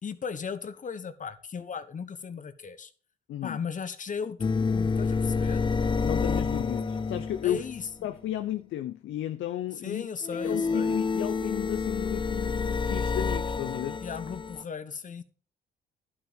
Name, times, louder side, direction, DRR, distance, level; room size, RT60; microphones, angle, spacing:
voice 1, 0.0-2.9 3.4-5.6 7.4-7.8 9.8-10.9 14.0-15.2, left 6 dB, 40° left, 1.2 m, -36 dB
voice 2, 3.3-3.6 6.0-7.7 8.0-10.1 10.4-14.0, left 12 dB, 75° left, 0.7 m, -33 dB
sound 1, 4.4-7.9 10.2-14.6, left 5 dB, 25° left, 0.5 m, -28 dB
11.5 x 6.0 x 5.6 m
cardioid pair, 90°, 20 cm